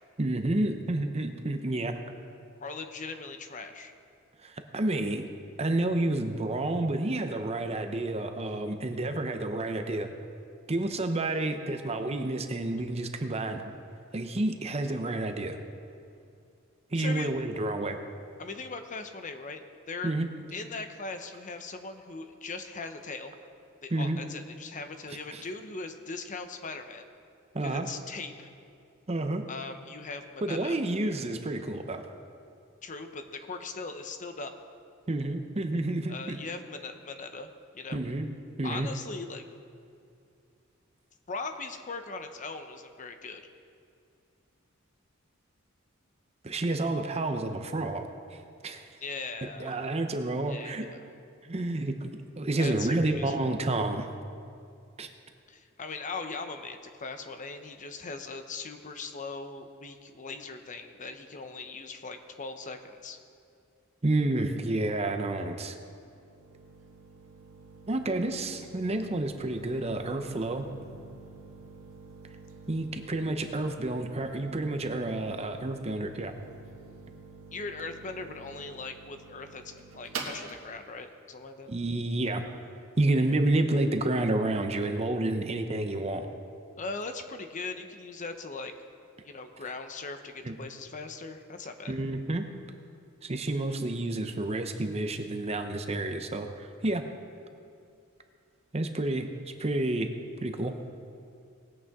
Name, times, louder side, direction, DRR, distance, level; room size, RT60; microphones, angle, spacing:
voice 1, 0.2-1.9 4.4-5.3 5.6-10.1 10.7-13.6 14.1-15.6 16.9-18.0 20.0-20.3 23.9-24.2 25.3-25.4 27.5-27.9 29.1-29.4 30.4-32.0 35.1-36.4 37.9-38.3 38.6-38.9 46.4-48.0 48.3-48.4 48.6-48.8 49.6-50.9 51.4-52.1 52.4-54.1 55.0-55.1 64.0-65.8 67.9-70.7 72.7-76.3 81.7-82.4 83.0-86.3 90.4-90.5 91.9-92.5 93.2-97.1 98.7-99.3 99.6-100.1 100.4-100.8, right 2 dB, 30° right, 7 dB, 0.7 m, -29 dB
voice 2, 2.6-3.9 17.0-17.3 18.4-20.2 20.5-23.3 23.8-27.1 27.6-28.5 29.5-30.8 32.8-34.5 36.1-37.5 37.7-38.0 38.6-39.4 41.3-43.4 49.0-51.0 52.6-53.6 55.5-63.2 77.5-81.7 86.8-88.7 89.2-92.0, left 3 dB, 40° left, 7 dB, 0.7 m, -40 dB
sound 1, 65.1-82.7, right 4 dB, 85° right, 1.6 m, -47 dB
19.0 x 8.6 x 3.6 m, 2.4 s
head